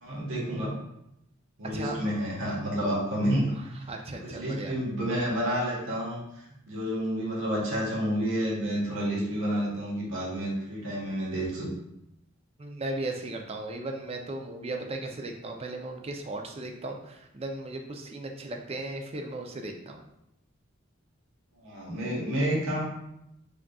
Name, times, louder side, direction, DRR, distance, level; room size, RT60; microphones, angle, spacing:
voice 1, 0.0-0.7 1.6-3.5 4.3-11.7 21.6-22.8, equal, 70° right, -4 dB, 1.3 m, -30 dB
voice 2, 3.9-4.7 12.6-20.0, right 2 dB, 30° right, 3 dB, 0.4 m, -36 dB
3.9 x 3.6 x 2.3 m, 0.82 s
head